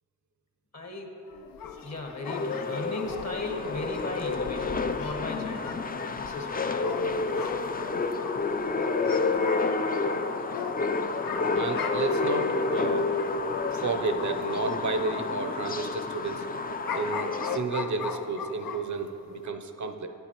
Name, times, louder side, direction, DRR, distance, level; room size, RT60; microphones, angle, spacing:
voice 1, 0.7-1.1 1.8-5.8 6.1-7.0, left 2 dB, 50° left, 2 dB, 1.1 m, -36 dB
sound 1, 1.3-14.7 15.0-19.1 19.4-19.5, left 6 dB, 85° left, 0.5 m, -40 dB
sound 2, 2.3-17.6, left 4 dB, 30° left, 0.4 m, -29 dB
voice 2, 11.2-13.2 13.7-16.5 16.9-20.1, right 4 dB, 60° right, 7 dB, 0.6 m, -32 dB
9.3 x 9.1 x 2.9 m, 3.0 s
cardioid pair, 50°, 33 cm